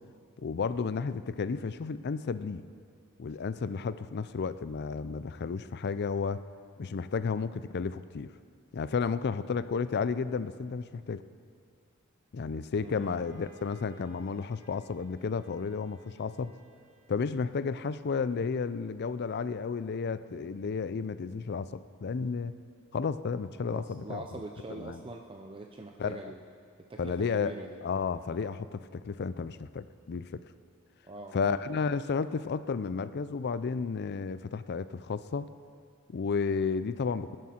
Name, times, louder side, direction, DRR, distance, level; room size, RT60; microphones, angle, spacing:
voice 1, 0.4-2.6 3.2-6.4 6.8-8.3 8.7-11.2 12.3-16.5 17.1-22.6 22.9-24.3 24.7-25.0 26.0-26.2 27.0-27.5 27.8-30.4 31.3-35.5 36.1-37.4, left 5 dB, 50° left, 14 dB, 0.4 m, -32 dB
Bowed string instrument, 12.7-17.6, right 2 dB, 55° right, 3.2 m, -60 dB
voice 2, 12.8-13.2 23.7-26.4 26.8-27.8 31.1-31.6, right 2 dB, 25° right, 3 dB, 0.6 m, -43 dB
19.5 x 11.0 x 4.4 m, 2.2 s
head